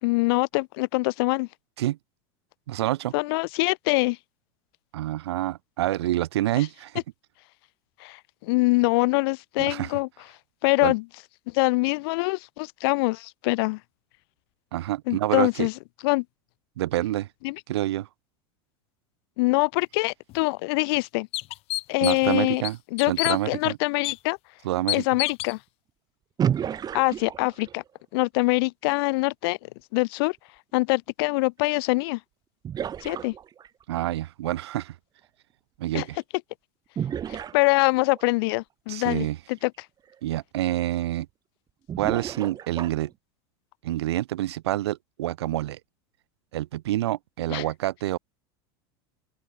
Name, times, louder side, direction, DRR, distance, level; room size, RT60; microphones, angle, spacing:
voice 1, 0.0-1.5 3.1-4.2 6.6-6.7 8.0-10.1 10.6-11.0 11.5-13.8 15.1-15.7 16.0-16.2 17.4-17.6 19.4-21.3 21.9-22.6 22.9-24.4 24.9-25.6 26.9-27.8 28.1-29.6 29.9-30.4 30.7-32.2 33.0-33.3 35.9-36.1 37.3-39.9 47.5-47.6, left 25 dB, 65° left, 4.0 m, -24 dB
voice 2, 2.7-3.1 4.9-7.0 9.6-9.9 10.8-10.9 14.7-15.7 16.8-17.3 17.7-18.1 22.0-22.8 23.1-23.8 24.6-25.0 33.9-35.0 35.8-36.2 38.9-39.4 40.2-41.3 42.0-43.1 43.8-45.8 46.5-48.2, right 14 dB, 85° right, 3.5 m, -27 dB
sound 1, 20.3-20.4 20.9-21.0 21.3-22.3 22.6-23.4 24.0-24.2 24.9-25.5, left 18 dB, 50° left, 3.0 m, -29 dB
sound 2, 26.4-27.9 31.8-31.9 32.6-33.8 37.0-38.2 39.6-39.7 40.1-40.2 41.9-43.1, right 9 dB, 30° right, 4.8 m, -31 dB
open air
supercardioid pair, 125°, 13 cm